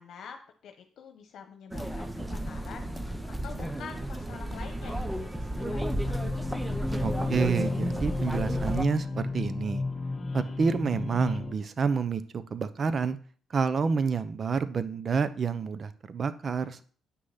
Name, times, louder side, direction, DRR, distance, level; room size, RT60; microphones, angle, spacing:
voice 1, 0.0-6.3, left 7 dB, 70° left, 5 dB, 1.2 m, -47 dB
sound 1, 1.7-8.8, right 1 dB, 10° right, 0.9 m, -33 dB
sound 2, 5.5-11.5, left 3 dB, 35° left, 1.2 m, -33 dB
voice 2, 7.0-9.8 10.3-13.2 13.5-16.9, right 5 dB, 45° right, 13 dB, 0.9 m, -29 dB
9.5 x 6.5 x 5.9 m, 0.43 s
cardioid pair, 90°, 0 cm